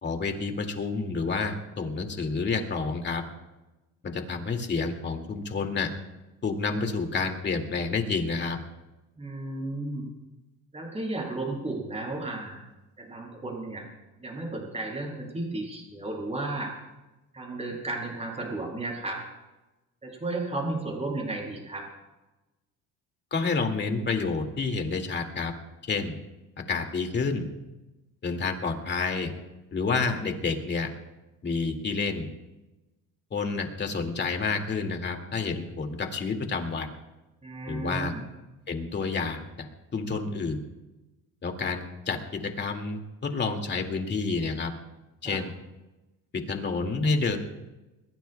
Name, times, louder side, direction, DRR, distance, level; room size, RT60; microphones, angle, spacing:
voice 1, 0.0-3.2 4.0-5.9 6.4-8.6 23.3-25.5 25.9-26.1 26.7-27.5 28.2-29.3 29.7-30.9 31.4-32.3 33.3-36.9 37.7-38.1 38.7-39.7 39.9-40.6 41.4-44.7 45.2-45.5 46.3-47.4, left 4 dB, 30° left, 4 dB, 2.2 m, -29 dB
voice 2, 9.2-10.1 10.7-12.6 13.0-13.8 14.2-16.7 17.3-19.2 20.0-21.9 37.4-38.2 45.2-45.4, right 2 dB, 20° right, -2 dB, 7.3 m, -33 dB
22.5 x 22.0 x 2.3 m, 1.0 s
cardioid pair, 135°, 35 cm